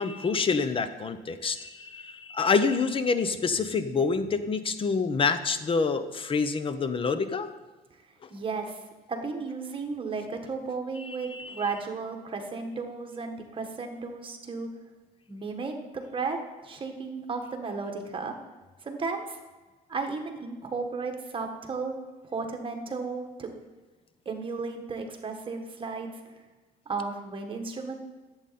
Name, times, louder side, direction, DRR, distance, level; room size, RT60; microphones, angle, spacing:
voice 1, 0.0-7.5 11.1-11.6, left 5 dB, 30° left, 11 dB, 0.8 m, -27 dB
voice 2, 8.3-8.8 9.1-14.7 15.3-18.3 18.8-19.4 19.9-21.9 22.2-23.6 24.3-26.1 26.9-28.0, right 4 dB, 30° right, 3 dB, 1.6 m, -34 dB
11.0 x 8.0 x 4.2 m, 1.2 s
cardioid pair, 110°, 17 cm